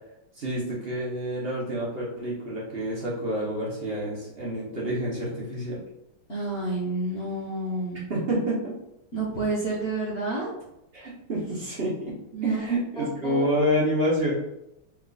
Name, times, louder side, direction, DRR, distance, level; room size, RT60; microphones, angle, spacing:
voice 1, 0.4-5.8 8.1-8.8 10.9-14.3, equal, 55° right, -6 dB, 0.6 m, -28 dB
voice 2, 6.3-8.0 9.1-10.5 12.3-12.6 13.0-13.4, right 2 dB, 40° left, -5 dB, 0.9 m, -29 dB
4.5 x 2.4 x 3.8 m, 0.86 s
omnidirectional pair, 2.4 m